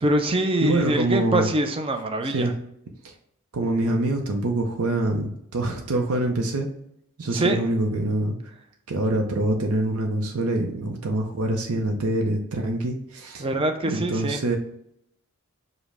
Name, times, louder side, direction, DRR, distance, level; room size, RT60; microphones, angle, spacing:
voice 1, 0.0-2.5 7.3-7.6 13.4-14.6, right 1 dB, 25° right, 6 dB, 0.4 m, -24 dB
voice 2, 0.6-1.5 2.2-2.6 3.0-3.1 3.5-6.7 7.2-8.4 8.9-13.5 13.8-14.6, right 2 dB, 85° right, 2 dB, 0.6 m, -25 dB
5.1 x 2.1 x 4.8 m, 0.73 s
head